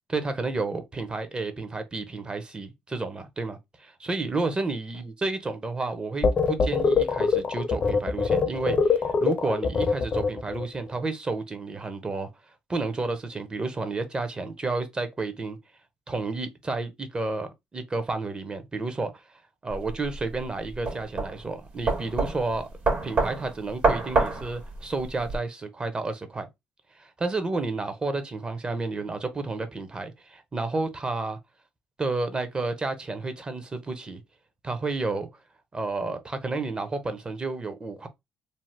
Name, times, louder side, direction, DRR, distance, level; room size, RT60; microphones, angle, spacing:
voice 1, 0.1-12.3 12.7-15.6 16.1-19.2 19.6-22.7 23.0-26.5 27.0-31.4 32.0-34.2 34.6-35.3 35.7-38.1, right 3 dB, 25° right, 0.7 m, -31 dB
sound 1, 6.2-10.7, left 5 dB, 45° left, 0.5 m, -23 dB
sound 2, 19.7-25.4, right 3 dB, 50° right, 1.2 m, -27 dB
2.7 x 2.0 x 3.1 m
supercardioid pair, 75°, 3 cm